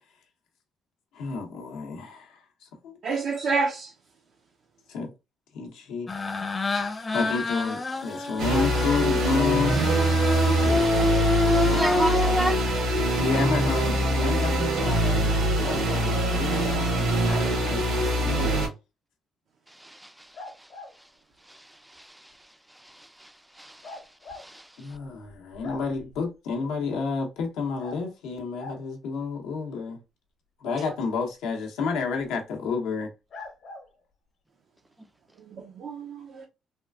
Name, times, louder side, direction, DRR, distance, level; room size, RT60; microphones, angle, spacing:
voice 1, 1.1-3.0 4.9-5.1 5.5-6.1 7.1-9.8 13.0-18.5 24.8-30.0 30.6-33.1, left 4 dB, 85° left, 0.9 m, -30 dB
voice 2, 3.0-3.9 30.8-30.9 35.5-36.5, right 4 dB, 65° right, 0.6 m, -29 dB
sound 1, 6.1-12.4, left 3 dB, 30° left, 0.6 m, -27 dB
sound 2, 8.4-18.7, right 1 dB, 90° right, 1.5 m, -24 dB
voice 3, 11.7-12.6 19.8-20.1 21.5-21.6 21.9-22.2 22.9-23.3 23.6-24.0 24.3-24.7, right 1 dB, 5° right, 0.4 m, -31 dB
sound 3, 20.3-20.9 23.8-24.4 24.9-25.0 25.3-26.1 27.8-28.0 28.6-28.8 32.2-32.3 33.3-33.9, left 2 dB, 70° left, 1.1 m, -41 dB
3.6 x 2.4 x 2.3 m
supercardioid pair, 70°, 0 cm